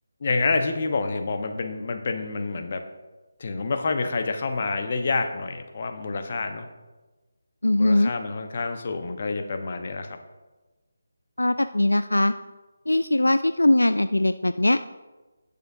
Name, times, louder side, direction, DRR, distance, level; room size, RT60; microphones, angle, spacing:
voice 1, 0.2-2.8 3.4-6.7 7.8-10.1, left 3 dB, 40° left, 6 dB, 1.0 m, -28 dB
voice 2, 7.6-8.1 11.4-12.3 12.9-14.8, left 1 dB, 75° left, 12 dB, 0.3 m, -20 dB
17.0 x 6.7 x 2.7 m, 1.2 s
figure-of-eight pair, 155°, 0 cm